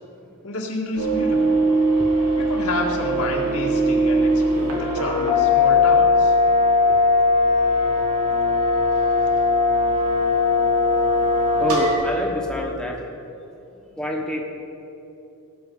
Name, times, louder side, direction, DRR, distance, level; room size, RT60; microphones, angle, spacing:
voice 1, 0.4-1.6 2.4-6.3, left 1 dB, 80° left, -1 dB, 1.9 m, -29 dB
sound 1, 1.0-11.9, left 2 dB, 90° right, 2.8 m, -19 dB
voice 2, 11.6-13.0 14.0-14.4, left 1 dB, 5° left, -2 dB, 1.1 m, -26 dB
18.5 x 6.4 x 5.5 m, 2.8 s
head